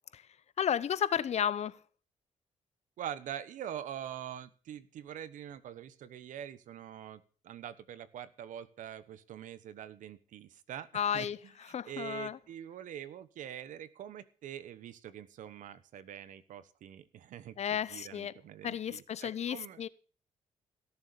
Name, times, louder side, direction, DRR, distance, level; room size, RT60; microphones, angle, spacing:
voice 1, 0.6-1.8 10.9-11.4 11.7-12.4 17.6-18.3 18.6-19.9, left 8 dB, 55° left, 0.8 m, -32 dB
voice 2, 3.0-19.8, right 10 dB, 80° right, 1.2 m, -44 dB
17.5 x 7.1 x 7.0 m
cardioid pair, 90°, 13 cm